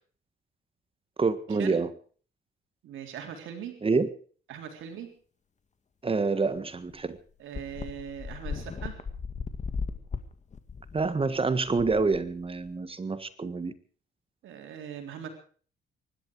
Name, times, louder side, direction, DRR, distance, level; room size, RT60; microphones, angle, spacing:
voice 1, 1.2-1.9 3.8-4.1 6.0-7.2 10.9-13.7, right 4 dB, 30° right, 13 dB, 1.6 m, -27 dB
voice 2, 2.8-3.7 4.5-5.1 7.4-9.0 14.4-15.3, right 8 dB, 80° right, 5 dB, 3.8 m, -40 dB
sound 1, 6.5-6.6 6.9-7.0 7.5-12.7, left 5 dB, 35° left, 2.0 m, -37 dB
23.5 x 12.0 x 4.8 m, 0.44 s
cardioid pair, 90°, 20 cm